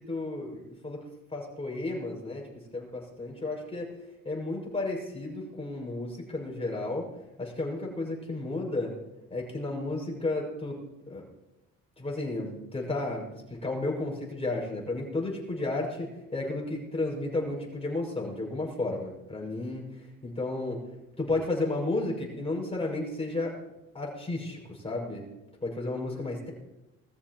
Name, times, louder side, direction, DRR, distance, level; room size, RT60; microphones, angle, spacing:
voice 1, 0.1-1.1 1.3-3.9 4.2-7.1 7.4-8.9 9.3-10.8 11.1-11.2 12.0-20.9 21.2-23.6 23.9-25.2 25.6-26.5, left 2 dB, 20° left, -1 dB, 6.3 m, -33 dB
21.5 x 14.0 x 3.1 m, 0.95 s
cardioid pair, 90°, 30 cm